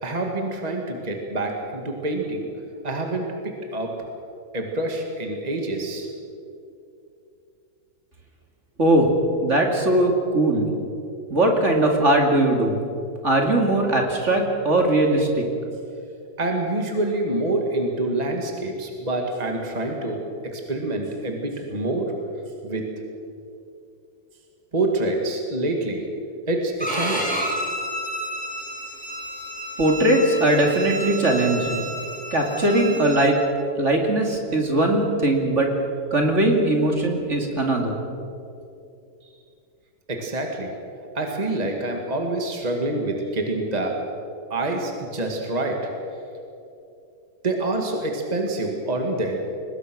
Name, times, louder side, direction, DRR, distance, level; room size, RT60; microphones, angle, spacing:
voice 1, 0.0-2.5 2.8-4.1 4.5-6.1 16.4-20.2 20.5-22.1 22.6-22.9 24.7-26.0 26.5-27.5 40.1-40.7 41.1-44.0 44.5-45.9 47.4-49.4, right 2 dB, 25° right, 2 dB, 2.2 m, -26 dB
voice 2, 8.8-9.1 9.4-10.7 11.3-12.8 13.2-15.5 29.8-31.9 32.3-33.4 33.8-35.7 36.1-38.0, right 1 dB, 45° right, 2 dB, 2.7 m, -20 dB
Bowed string instrument, 26.8-33.3, right 1 dB, 5° left, 4.0 m, -31 dB
23.0 x 20.0 x 6.3 m, 2.7 s
omnidirectional pair, 1.8 m